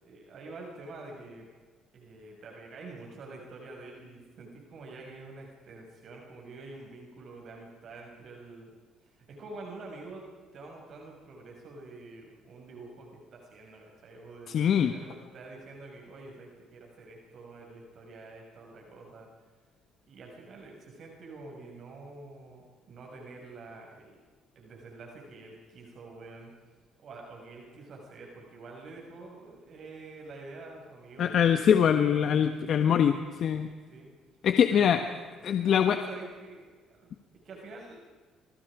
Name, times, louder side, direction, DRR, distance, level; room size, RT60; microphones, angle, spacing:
voice 1, 0.0-1.5 1.9-8.7 9.0-10.3 10.5-14.6 14.9-19.3 20.1-24.2 24.5-26.5 27.0-31.7 32.6-32.8 33.8-34.1 34.7-35.1 35.6-37.1 37.4-38.0, right 3 dB, 55° right, 0 dB, 6.5 m, -47 dB
voice 2, 14.5-14.9 31.2-33.7 34.4-35.0 35.4-36.0, left 8 dB, 55° left, 7 dB, 1.5 m, -23 dB
27.0 x 26.5 x 5.1 m, 1.5 s
cardioid pair, 110°, 0 cm